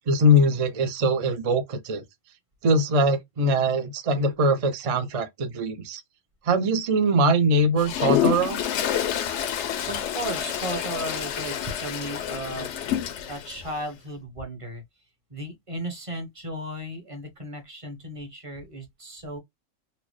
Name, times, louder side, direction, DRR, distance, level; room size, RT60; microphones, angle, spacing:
voice 1, 0.1-2.0 2.6-6.0 6.4-8.6, equal, 45° right, 0.4 m, -22 dB
Toilet flush, 7.8-13.6, left 10 dB, 70° left, 0.8 m, -28 dB
voice 2, 9.9-14.8 15.3-19.4, right 1 dB, 30° right, 0.8 m, -35 dB
4.1 x 2.0 x 3.1 m
omnidirectional pair, 1.4 m